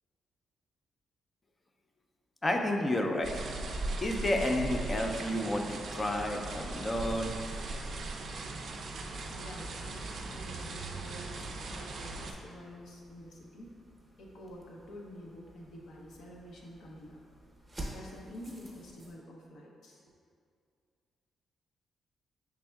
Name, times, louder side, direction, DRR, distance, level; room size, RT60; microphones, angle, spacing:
voice 1, 2.4-3.4 4.0-7.3, left 1 dB, 25° left, 3 dB, 0.3 m, -31 dB
sound 1, 3.2-12.3, right 2 dB, 55° right, 0.4 m, -39 dB
sound 2, 7.4-19.1, right 1 dB, 15° right, 0.7 m, -52 dB
voice 2, 9.3-13.8 14.2-17.2 17.9-20.0, equal, 80° left, -2 dB, 0.6 m, -48 dB
5.2 x 3.5 x 2.2 m, 2.3 s
cardioid pair, 120°, 0 cm